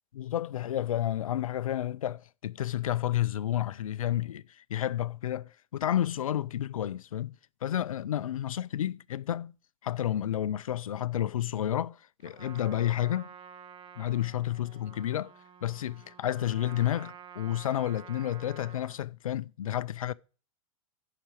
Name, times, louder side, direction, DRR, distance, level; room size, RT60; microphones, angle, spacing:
voice 1, 0.2-9.5 9.8-13.3 14.0-15.3 15.6-20.1, left 12 dB, 90° left, 0.5 m, -31 dB
Trumpet, 12.2-19.0, right 8 dB, 30° right, 0.7 m, -50 dB
7.2 x 5.9 x 7.6 m
hypercardioid pair, 110°, 17 cm